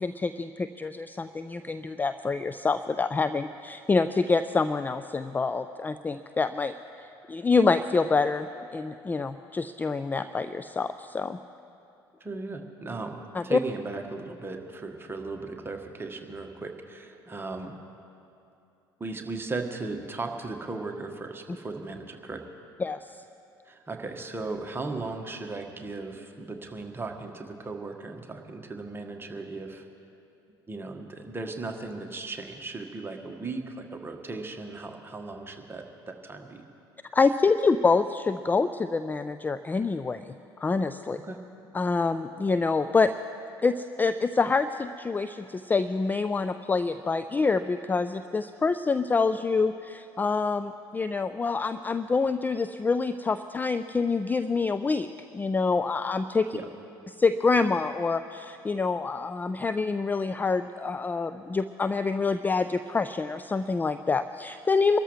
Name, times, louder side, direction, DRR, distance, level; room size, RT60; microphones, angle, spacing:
voice 1, 0.0-11.4 13.3-13.6 22.8-23.0 37.1-40.3 40.6-41.2 41.7-43.1 43.6-55.1 55.3-56.5 57.2-65.0, left 4 dB, 15° left, 11 dB, 0.4 m, -26 dB
voice 2, 12.2-17.7 19.0-22.4 23.6-29.9 30.7-36.6 41.2-41.4 56.5-56.6, right 3 dB, 15° right, 3 dB, 1.5 m, -37 dB
24.0 x 13.5 x 3.2 m, 2.7 s
figure-of-eight pair, 60°, 13 cm